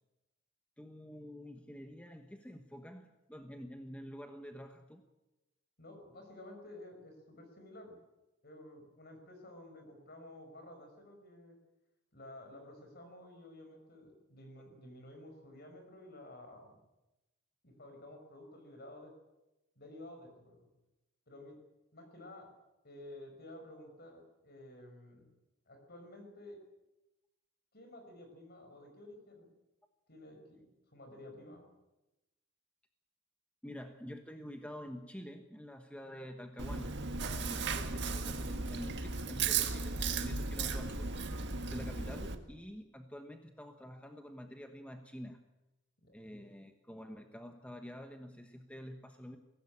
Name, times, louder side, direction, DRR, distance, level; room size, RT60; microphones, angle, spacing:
voice 1, 0.8-5.0 33.6-45.4 46.1-49.4, equal, 5° left, 5 dB, 1.2 m, -48 dB
voice 2, 5.8-8.0 8.4-11.6 12.1-16.8 17.6-19.1 19.8-20.7 21.3-21.6 21.9-22.5 22.8-25.3 25.7-26.6 27.7-29.5 30.1-31.7 46.0-46.4, left 1 dB, 50° left, 5 dB, 6.0 m, -52 dB
Chewing mastication, 36.6-42.3, right 4 dB, 55° right, 1.7 m, -36 dB
22.5 x 17.0 x 8.8 m, 1.0 s
head